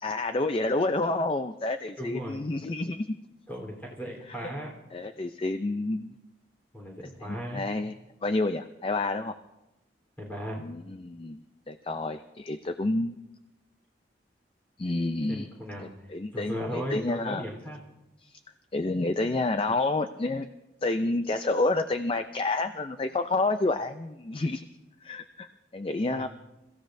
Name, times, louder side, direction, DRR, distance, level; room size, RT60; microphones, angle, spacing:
voice 1, 0.0-3.1 4.9-6.1 7.2-7.9 8.2-9.3 10.6-13.2 14.8-15.5 15.8-17.4 18.2-18.4 18.7-20.5 20.8-24.7 25.0-25.5 25.7-26.3, left 2 dB, 30° left, 9 dB, 0.4 m, -29 dB
voice 2, 2.0-2.4 3.5-4.8 6.7-7.6 10.2-10.6 15.3-15.9 16.3-17.8 26.1-26.3, equal, 10° left, -2 dB, 3.6 m, -36 dB
28.5 x 15.5 x 2.6 m, 0.99 s
head